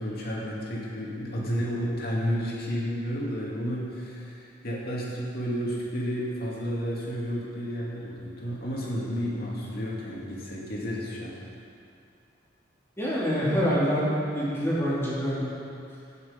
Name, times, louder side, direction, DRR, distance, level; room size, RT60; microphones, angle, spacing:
voice 1, 0.0-11.4, equal, 55° left, -4 dB, 2.4 m, -31 dB
voice 2, 13.0-14.0 14.3-15.5, equal, 15° left, -9 dB, 2.6 m, -26 dB
16.0 x 6.9 x 5.1 m, 2.6 s
head